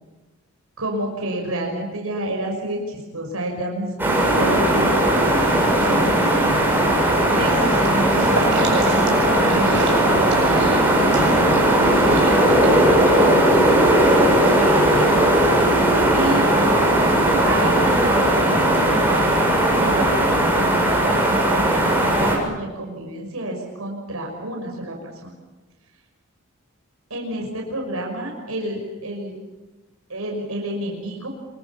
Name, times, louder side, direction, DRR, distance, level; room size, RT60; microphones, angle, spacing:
voice 1, 0.8-5.2 5.7-6.8 7.3-15.3 16.1-16.5 17.4-25.3 27.1-29.4 30.1-31.3, right 1 dB, 85° right, 0 dB, 5.9 m, -30 dB
sound 1, 4.0-22.4, right 1 dB, 10° right, 6.8 m, -17 dB
sound 2, 7.3-13.6, right 1 dB, 60° right, 7.0 m, -32 dB
27.5 x 23.5 x 7.3 m, 1.2 s
head